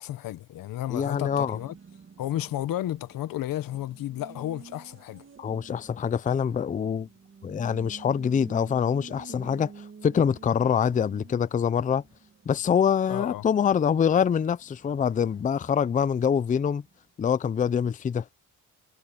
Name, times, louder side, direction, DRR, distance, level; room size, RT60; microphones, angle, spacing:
voice 1, 0.0-1.7 2.2-5.2 13.1-13.4, left 13 dB, 90° left, 1.1 m, -32 dB
voice 2, 0.9-1.6 5.4-7.1 7.4-12.0 12.5-16.8 17.2-18.2, left 7 dB, 25° left, 0.4 m, -25 dB
Race car auto racing, 0.9-17.1, right 5 dB, 40° right, 2.6 m, -50 dB
cardioid pair, 125°, 33 cm